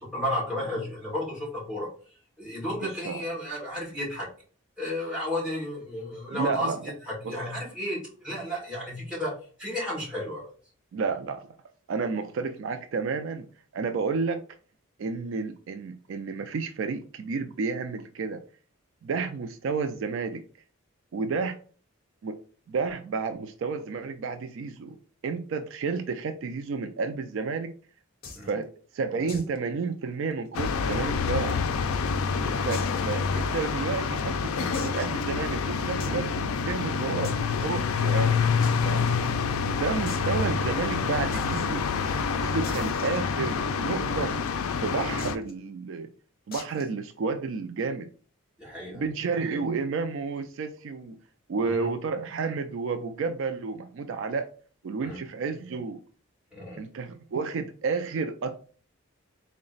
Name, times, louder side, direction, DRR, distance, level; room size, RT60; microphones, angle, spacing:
voice 1, 0.1-1.9 2.4-4.3 4.8-6.7 7.1-10.5 28.3-28.5 32.4-32.6 48.6-49.0 51.6-51.9 55.0-55.2 56.5-56.8, left 1 dB, 5° right, -5 dB, 1.6 m, -33 dB
voice 2, 2.8-3.2 6.3-6.8 7.2-7.4 10.9-11.4 11.9-13.5 13.7-14.4 15.0-18.4 19.0-20.4 21.1-21.6 22.2-22.4 22.7-25.0 25.2-27.7 28.5-31.6 32.6-37.3 37.6-38.5 38.8-39.1 39.7-41.8 42.4-44.4 44.8-46.1 46.5-48.1 48.9-51.2 51.5-54.5 54.8-56.0 56.8-58.6, right 4 dB, 60° right, 7 dB, 0.3 m, -31 dB
sound 1, 28.2-28.5 29.3-29.6 29.8-29.9 30.3-30.4 31.1-31.8 32.7-33.1 33.6-33.7 34.7-35.2 36.0-36.2 37.2-37.7 38.6-38.7 39.0-39.1 39.4-39.5 40.1-40.3 41.3-41.7 42.6-43.7 45.2-45.5 46.5-46.9, left 4 dB, 45° left, 0.7 m, -43 dB
sound 2, 30.5-45.4, left 5 dB, 75° left, 0.3 m, -27 dB
3.9 x 2.1 x 3.8 m, 0.42 s
head